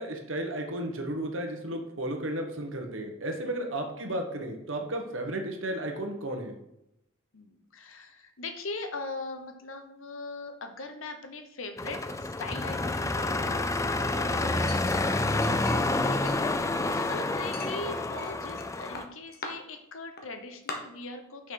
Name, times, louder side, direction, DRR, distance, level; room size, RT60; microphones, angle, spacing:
voice 1, 0.0-6.5 15.7-15.8, right 1 dB, 65° right, 3 dB, 1.4 m, -33 dB
voice 2, 7.3-15.2 16.0-21.5, left 3 dB, 75° left, 6 dB, 1.0 m, -41 dB
sound 1, 11.8-19.0, left 2 dB, 15° left, 0.4 m, -28 dB
Chink clink, 14.7-16.0 16.3-17.0 17.5-18.7 19.0-19.5 20.2-20.3 20.7-20.8, left 3 dB, 50° left, 1.2 m, -41 dB
6.2 x 6.0 x 4.8 m, 0.83 s
head